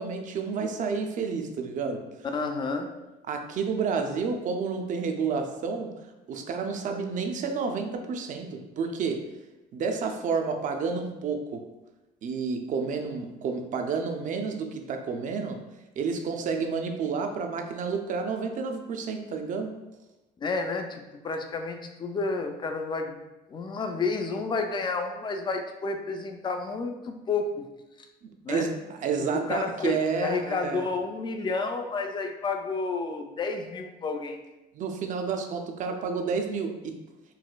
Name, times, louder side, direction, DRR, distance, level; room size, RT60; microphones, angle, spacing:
voice 1, 0.0-2.1 3.3-6.0 6.3-9.3 9.7-11.6 12.2-15.6 16.0-19.8 28.2-30.8 34.7-37.0, right 5 dB, 50° right, 5 dB, 0.4 m, -30 dB
voice 2, 2.3-2.9 20.4-23.2 23.5-27.5 28.4-28.7 29.5-34.4, left 4 dB, 30° left, 5 dB, 0.4 m, -30 dB
4.0 x 2.2 x 2.2 m, 1.0 s
cardioid pair, 110°, 17 cm